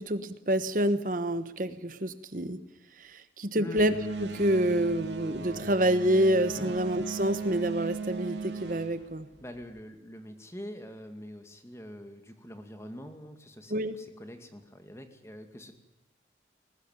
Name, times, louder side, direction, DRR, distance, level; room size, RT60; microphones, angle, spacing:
voice 1, 0.0-2.6 3.0-9.3 13.7-13.9, right 1 dB, 50° right, 11 dB, 1.2 m, -27 dB
sound 1, 3.8-9.8, right 3 dB, 80° right, 2.9 m, -37 dB
voice 2, 9.4-15.7, equal, 15° left, 6 dB, 2.3 m, -44 dB
21.5 x 19.0 x 9.3 m, 0.97 s
head